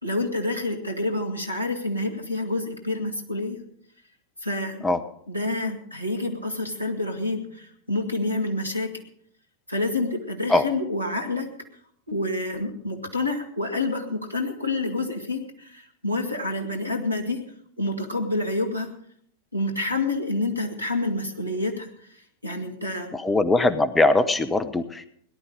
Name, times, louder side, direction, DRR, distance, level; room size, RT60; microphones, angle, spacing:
voice 1, 0.0-3.6 4.4-4.8 5.3-9.0 9.7-11.5 12.1-17.4 17.8-18.9 19.5-23.1, left 2 dB, 90° right, 3 dB, 2.1 m, -28 dB
voice 2, 23.1-25.1, left 2 dB, 10° left, 12 dB, 0.9 m, -21 dB
18.0 x 11.5 x 5.1 m, 0.65 s
figure-of-eight pair, 90°, 0 cm